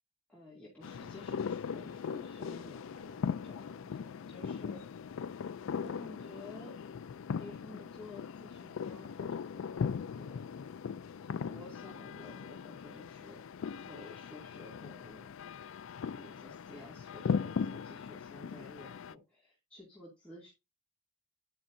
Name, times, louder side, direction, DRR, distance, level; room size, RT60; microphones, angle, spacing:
voice 1, 0.3-4.8 5.8-7.0 7.4-10.7 11.2-13.4 13.8-15.3 16.1-20.5, left 2 dB, 5° left, -6 dB, 2.4 m, -52 dB
sound 1, 0.8-19.1, left 6 dB, 60° left, 0.3 m, -39 dB
10.0 x 6.1 x 2.6 m, 0.25 s
head